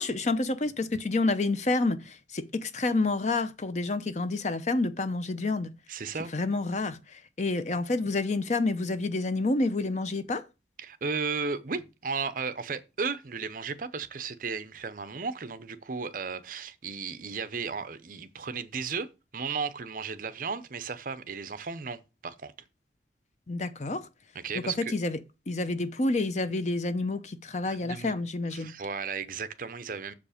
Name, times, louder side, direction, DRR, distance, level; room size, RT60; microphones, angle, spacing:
voice 1, 0.0-5.7 6.3-10.4 23.5-24.1 24.5-25.2 25.5-28.7, left 2 dB, 40° left, 0.7 m, -29 dB
voice 2, 5.9-6.3 10.8-22.5 24.4-24.9 27.7-28.2 28.5-30.1, right 5 dB, 50° right, 0.7 m, -35 dB
7.0 x 5.1 x 5.0 m
head